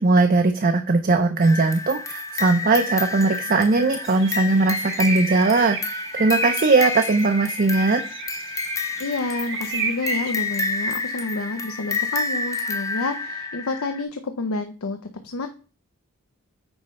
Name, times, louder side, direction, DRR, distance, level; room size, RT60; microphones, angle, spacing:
voice 1, 0.0-8.0, right 3 dB, 40° right, 6 dB, 0.5 m, -19 dB
sound 1, 1.4-14.0, left 3 dB, 15° left, 0.6 m, -29 dB
sound 2, 4.0-10.3, right 6 dB, 60° right, 1.1 m, -33 dB
voice 2, 9.0-15.0 15.2-15.5, left 3 dB, 80° left, 7 dB, 0.7 m, -29 dB
9.0 x 3.2 x 5.3 m, 0.37 s
head